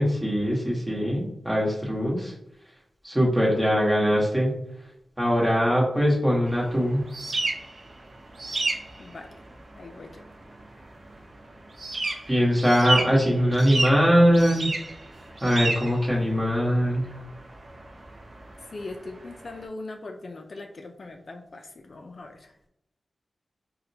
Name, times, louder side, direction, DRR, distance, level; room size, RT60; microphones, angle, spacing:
voice 1, 0.0-2.3 3.0-4.5 5.2-7.0 12.3-14.7 15.4-17.1, equal, 15° right, -4 dB, 1.2 m, -22 dB
sound 1, 6.5-19.6, right 2 dB, 50° right, 0.5 m, -33 dB
voice 2, 9.7-10.2 18.7-22.5, left 2 dB, 55° left, 4 dB, 0.3 m, -40 dB
4.1 x 2.1 x 2.7 m, 0.77 s
wide cardioid pair, 105°, 0 cm